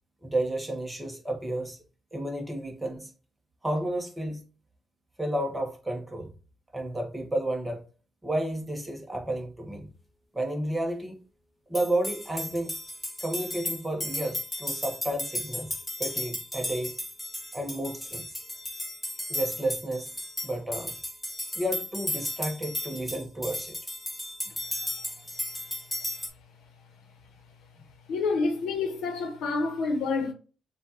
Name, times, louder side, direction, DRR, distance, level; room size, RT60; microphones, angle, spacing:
voice 1, 0.2-1.8 2.1-3.1 3.6-4.4 5.2-6.3 6.7-7.9 8.2-9.9 10.3-11.2 11.7-12.7 13.2-15.7 16.0-16.9 17.5-18.3 19.3-20.1 20.4-20.9 21.5-23.8, right 1 dB, 10° right, 1.1 m, -31 dB
sound 1, 11.7-26.3, left 1 dB, 10° left, 1.3 m, -35 dB
voice 2, 28.1-30.3, left 4 dB, 80° left, 1.0 m, -28 dB
6.5 x 2.4 x 2.9 m
cardioid pair, 90°, 0 cm